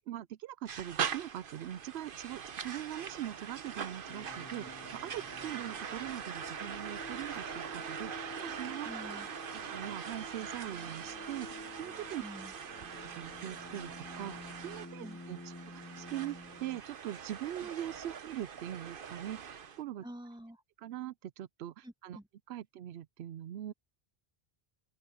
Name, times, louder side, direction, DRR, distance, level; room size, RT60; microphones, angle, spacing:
voice 1, 0.1-9.2 9.5-12.2 12.9-20.0 20.8-22.2 22.5-23.7, right 12 dB, 80° right, 0.8 m, -42 dB
sound 1, 0.7-19.8, right 7 dB, 60° right, 1.0 m, -42 dB
sound 2, 4.1-16.8, left 2 dB, 15° left, 0.8 m, -50 dB
voice 2, 8.8-9.3 12.2-12.5 15.0-15.2 20.0-20.6 21.8-22.2, equal, 5° right, 1.8 m, -47 dB
open air
omnidirectional pair, 1.1 m